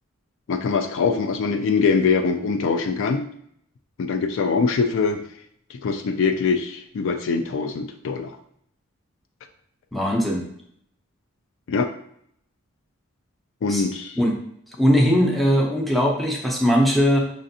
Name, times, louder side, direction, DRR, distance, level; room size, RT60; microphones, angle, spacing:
voice 1, 0.5-3.3 4.0-5.2 5.7-8.4 11.7-11.9 13.6-14.2, left 5 dB, 65° left, 6 dB, 0.3 m, -23 dB
voice 2, 9.9-10.4 13.7-13.8 14.2-14.4 14.8-17.2, equal, ahead, -1 dB, 0.6 m, -19 dB
5.1 x 2.5 x 2.7 m, 0.69 s
head